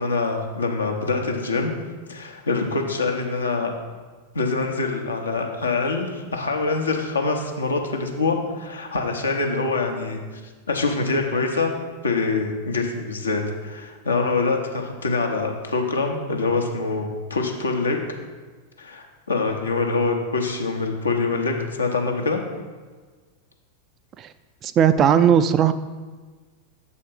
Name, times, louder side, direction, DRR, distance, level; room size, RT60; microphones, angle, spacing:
voice 1, 0.0-1.7 2.1-3.7 4.3-10.4 10.7-11.7 12.0-18.0 18.8-22.4, left 3 dB, 75° left, 2 dB, 0.9 m, -25 dB
voice 2, 24.6-25.7, right 8 dB, 30° right, 12 dB, 0.3 m, -17 dB
6.8 x 4.1 x 5.7 m, 1.4 s
figure-of-eight pair, 90°, 0 cm